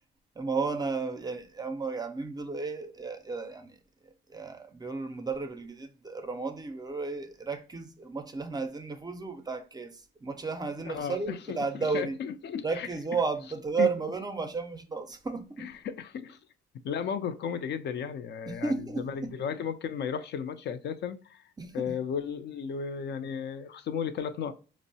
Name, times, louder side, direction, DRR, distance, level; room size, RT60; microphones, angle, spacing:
voice 1, 0.4-12.2 12.6-15.7 18.5-19.3 21.6-22.0, right 4 dB, 20° right, 0.4 m, -33 dB
voice 2, 10.8-12.9 13.8-13.9 15.6-16.4 16.8-21.4 21.7-24.5, left 7 dB, 60° left, 0.4 m, -34 dB
4.3 x 2.0 x 2.7 m
cardioid pair, 90°, 20 cm